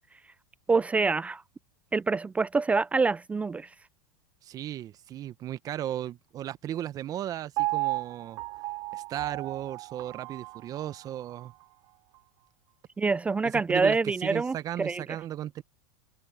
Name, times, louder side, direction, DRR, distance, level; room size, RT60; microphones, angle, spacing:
voice 1, 0.7-1.4 1.9-3.7 13.0-15.0, right 4 dB, 15° right, 0.4 m, -26 dB
voice 2, 4.4-8.4 8.9-11.5 13.5-15.6, right 11 dB, 35° right, 1.1 m, -36 dB
Piano, 7.6-11.7 12.1-12.2, right 21 dB, 50° right, 4.5 m, -34 dB
open air
hypercardioid pair, 110°, 10 cm